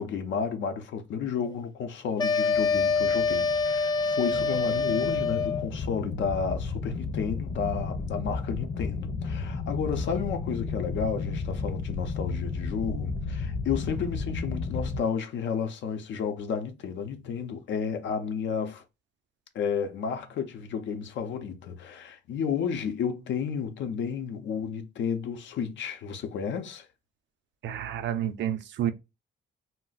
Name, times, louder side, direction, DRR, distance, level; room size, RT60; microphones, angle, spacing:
voice 1, 0.0-18.8 19.5-26.9, left 6 dB, 70° left, 0.6 m, -32 dB
sound 1, 2.2-5.7, left 4 dB, 20° left, 0.4 m, -26 dB
sound 2, 2.5-15.0, left 4 dB, 50° left, 0.9 m, -33 dB
voice 2, 27.6-28.9, right 10 dB, 65° right, 0.5 m, -30 dB
2.3 x 2.0 x 3.9 m
cardioid pair, 90°, 20 cm